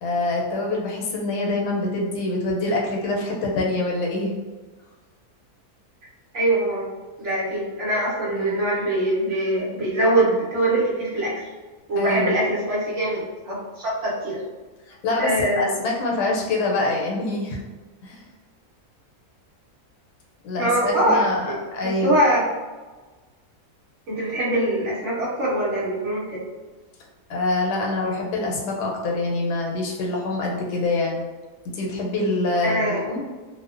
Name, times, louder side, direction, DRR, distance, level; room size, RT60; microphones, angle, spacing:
voice 1, 0.0-4.3 8.3-8.6 12.0-12.4 14.9-17.6 18.0-18.2 20.4-22.2 27.3-31.3 31.7-33.2, left 2 dB, 85° left, -1 dB, 1.1 m, -25 dB
voice 2, 6.3-6.9 7.2-11.3 11.9-14.4 15.2-15.8 20.6-22.4 24.1-26.4 32.6-33.0, right 1 dB, 60° right, -7 dB, 0.9 m, -23 dB
2.6 x 2.1 x 2.4 m, 1.3 s
omnidirectional pair, 1.7 m